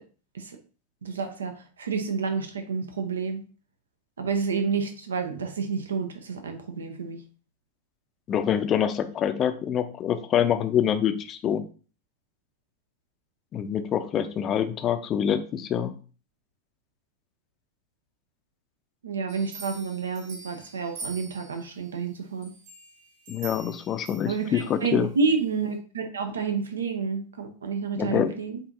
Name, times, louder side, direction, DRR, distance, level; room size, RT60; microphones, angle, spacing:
voice 1, 1.0-3.4 4.2-7.2 19.0-22.5 24.3-28.6, right 5 dB, 70° right, 6 dB, 0.6 m, -29 dB
voice 2, 8.3-11.6 13.5-15.9 23.3-25.1 28.0-28.3, left 9 dB, 30° left, 9 dB, 0.5 m, -26 dB
sound 1, 19.3-21.9 22.4-24.8 25.3-25.4, right 4 dB, 55° right, 1.6 m, -44 dB
7.8 x 2.7 x 2.5 m, 0.38 s
figure-of-eight pair, 90°, 0 cm